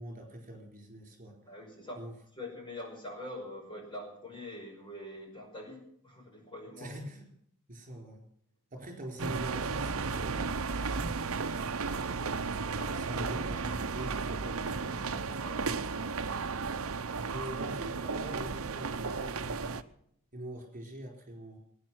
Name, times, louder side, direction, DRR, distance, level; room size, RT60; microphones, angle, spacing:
voice 1, 0.0-1.4 2.0-2.1 6.8-7.3 7.7-8.2 8.7-11.4 12.9-14.9 17.3-19.8 20.3-21.6, right 1 dB, 35° right, 3 dB, 4.5 m, -44 dB
voice 2, 1.5-2.0 2.4-6.9 11.8-12.1 12.7-13.0 14.0-14.1 15.4-15.6, left 1 dB, 20° left, 0 dB, 5.4 m, -44 dB
sound 1, 9.2-19.8, right 4 dB, 65° right, 0.9 m, -34 dB
20.5 x 9.8 x 6.3 m, 0.70 s
head